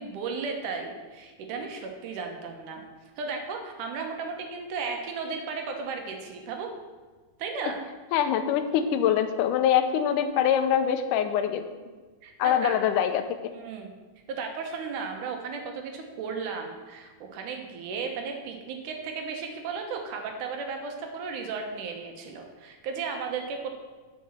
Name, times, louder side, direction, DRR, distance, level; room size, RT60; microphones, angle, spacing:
voice 1, 0.0-2.8 3.2-6.7 7.4-7.8 12.2-12.8 13.5-13.9 14.3-23.7, right 5 dB, 75° right, 3 dB, 2.6 m, -35 dB
voice 2, 8.1-11.6 12.4-13.5, left 9 dB, 85° left, 9 dB, 2.1 m, -24 dB
8.5 x 5.4 x 7.3 m, 1.3 s
omnidirectional pair, 3.7 m